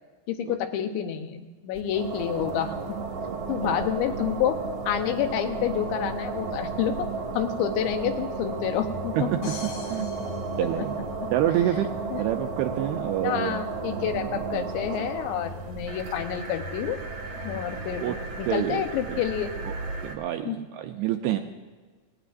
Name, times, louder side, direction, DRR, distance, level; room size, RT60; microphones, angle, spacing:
voice 1, 0.3-3.0 3.5-4.6 4.9-7.1 7.3-9.5 10.8-11.3 12.1-12.2 13.2-17.0 17.4-19.5 20.4-20.6, left 9 dB, 90° left, 7 dB, 3.2 m, -29 dB
sound 1, 1.7-20.2, right 4 dB, 60° right, 1.7 m, -34 dB
voice 2, 9.2-10.1 10.6-10.9 11.3-11.9 12.2-13.6 14.3-14.7 18.0-18.2 18.4-18.8 19.1-19.2 19.7-19.8 20.0-21.4, right 12 dB, 85° right, 5 dB, 2.4 m, -28 dB
sound 2, 9.4-11.4, left 4 dB, 70° left, 4.0 m, -43 dB
19.0 x 17.5 x 2.5 m, 1.4 s
omnidirectional pair, 5.0 m